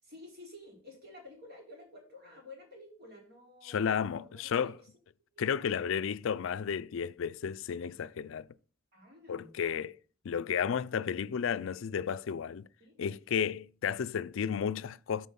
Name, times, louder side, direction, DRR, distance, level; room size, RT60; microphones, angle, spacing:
voice 1, 0.0-4.9 5.3-6.1 8.9-9.5 12.8-13.0, left 1 dB, 55° right, 3.7 m, -52 dB
voice 2, 3.6-4.7 5.4-8.5 9.3-10.0 10.2-12.7 13.0-15.3, left 7 dB, 70° left, 0.4 m, -32 dB
13.0 x 4.5 x 5.4 m
head